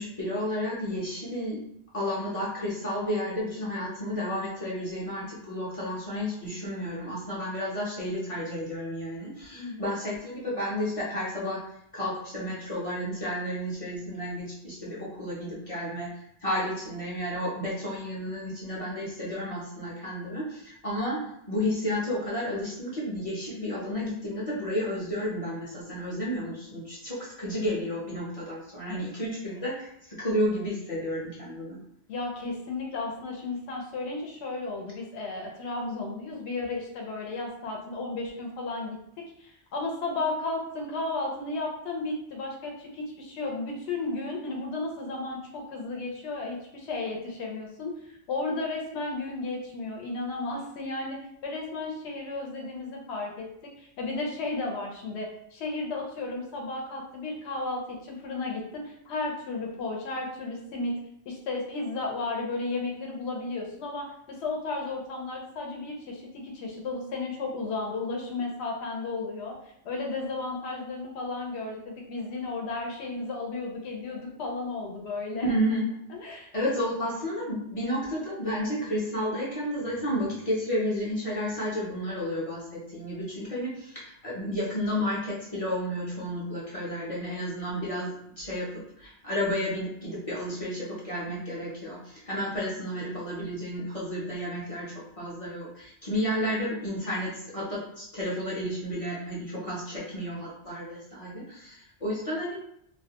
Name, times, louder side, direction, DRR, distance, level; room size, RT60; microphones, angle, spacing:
voice 1, 0.0-1.6 1.9-11.6 11.9-16.1 16.4-31.8 75.4-75.9 76.5-102.5, equal, 40° left, -7 dB, 0.6 m, -32 dB
voice 2, 9.6-10.0 28.9-29.0 32.1-48.0 48.3-60.9 61.3-69.6 69.8-75.5 76.1-76.5, left 3 dB, 70° left, 0 dB, 0.8 m, -34 dB
2.4 x 2.1 x 2.8 m, 0.74 s
omnidirectional pair, 1.2 m